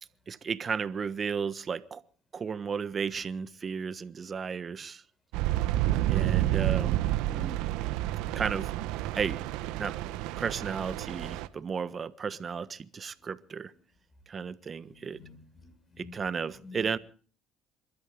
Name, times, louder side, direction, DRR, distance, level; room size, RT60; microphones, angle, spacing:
voice 1, 0.3-2.0 2.3-5.0 6.1-7.0 8.3-8.7 9.1-9.4 9.8-13.7 14.3-15.2 16.0-17.0, right 6 dB, 40° right, 1.3 m, -34 dB
sound 1, 5.3-11.5, right 14 dB, 80° right, 1.0 m, -29 dB
voice 2, 7.3-7.6 13.2-13.3 14.8-16.1 16.6-16.9, left 2 dB, 40° left, 6.3 m, -48 dB
28.0 x 13.0 x 3.8 m
hypercardioid pair, 65°, 0 cm